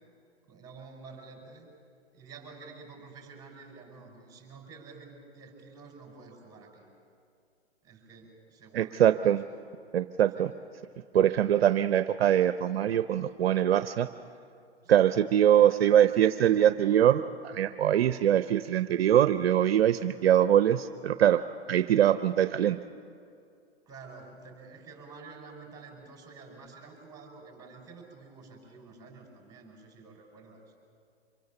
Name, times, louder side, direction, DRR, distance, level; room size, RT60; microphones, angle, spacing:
voice 1, 0.5-1.7 2.1-6.9 7.8-9.5 10.3-10.5 14.8-15.2 15.6-16.0 16.5-16.7 23.9-30.6, right 4 dB, 10° right, 0 dB, 5.9 m, -49 dB
voice 2, 8.7-9.4 9.9-10.5 11.1-14.1 14.9-21.4 21.7-22.8, right 10 dB, 65° right, 11 dB, 0.8 m, -23 dB
26.0 x 23.0 x 7.1 m, 2.4 s
hypercardioid pair, 135°, 33 cm